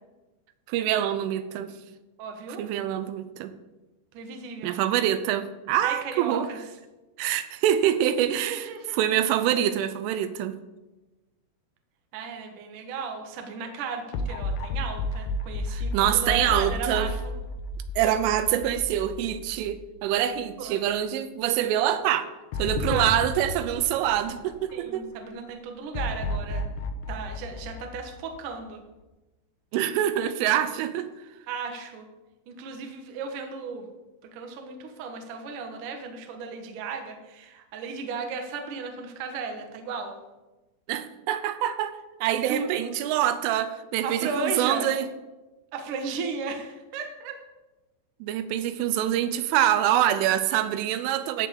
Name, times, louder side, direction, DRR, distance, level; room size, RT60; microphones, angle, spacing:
voice 1, 0.7-1.7 2.6-3.5 4.6-6.5 7.2-10.6 15.7-17.1 18.0-22.3 22.6-25.1 29.7-31.1 40.9-41.9 42.2-45.1 48.2-51.5, right 11 dB, 85° right, 11 dB, 3.2 m, -25 dB
voice 2, 2.2-2.7 4.1-4.7 5.8-6.6 8.3-9.0 12.1-17.3 20.6-20.9 22.9-23.1 24.7-26.6 27.1-28.8 31.5-32.1 32.5-33.9 34.3-40.1 42.4-42.9 44.0-44.9 45.7-47.4, right 5 dB, 60° right, 4 dB, 2.3 m, -35 dB
sound 1, 14.1-20.5 20.9-21.0 22.5-25.0 25.9-28.7, left 2 dB, 75° left, 2.7 m, -32 dB
14.0 x 5.5 x 8.6 m, 1.1 s
omnidirectional pair, 5.6 m